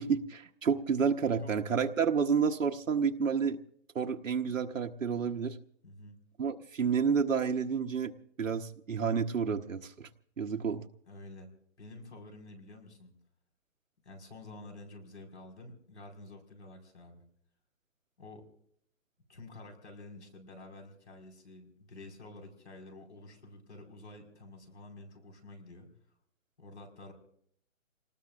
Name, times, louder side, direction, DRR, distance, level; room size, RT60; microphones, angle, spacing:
voice 1, 0.0-3.6 3.9-5.6 6.4-10.1 10.4-10.8, right 6 dB, 70° right, 4 dB, 1.1 m, -30 dB
voice 2, 5.8-6.2 11.1-11.5 11.8-13.1 14.0-17.2 18.2-18.4 19.3-25.9 26.6-27.1, left 2 dB, 55° left, 3 dB, 5.0 m, -50 dB
28.5 x 19.5 x 2.5 m, 0.68 s
hypercardioid pair, 180°, 40 cm